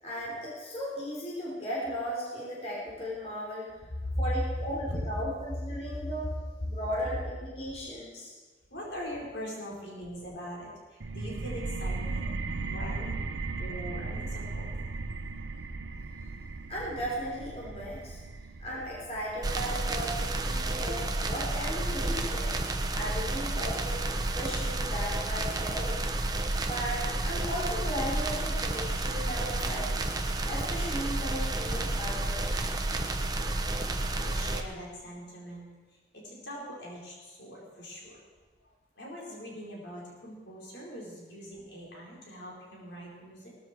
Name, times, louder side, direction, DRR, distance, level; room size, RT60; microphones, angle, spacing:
voice 1, 0.0-3.7 4.2-6.3 6.6-8.3 16.7-18.2 18.6-22.5 22.9-26.1 26.7-29.9 30.4-32.5, equal, 30° left, -5 dB, 3.9 m, -36 dB
voice 2, 3.9-4.2 4.9-5.0 5.9-6.1 8.7-12.3 12.7-13.2 13.6-14.7 28.1-28.2 28.5-29.0 34.2-38.3 38.6-38.7 38.9-43.5, equal, 65° left, -3 dB, 4.9 m, -41 dB
sound 1, 11.0-22.4, right 3 dB, 75° right, 0.9 m, -38 dB
sound 2, 19.4-34.6, right 2 dB, 20° right, 0.9 m, -31 dB
18.5 x 14.0 x 4.6 m, 1.3 s
head